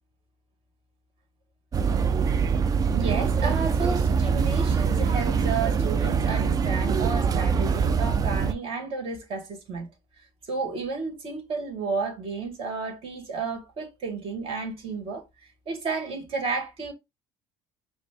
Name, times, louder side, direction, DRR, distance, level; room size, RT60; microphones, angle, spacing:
sound 1, 1.7-8.5, right 6 dB, 30° right, 0.4 m, -24 dB
voice 1, 2.9-9.9 10.5-16.9, right 4 dB, 50° right, 1.7 m, -32 dB
5.0 x 2.0 x 3.4 m
supercardioid pair, 105°, 12 cm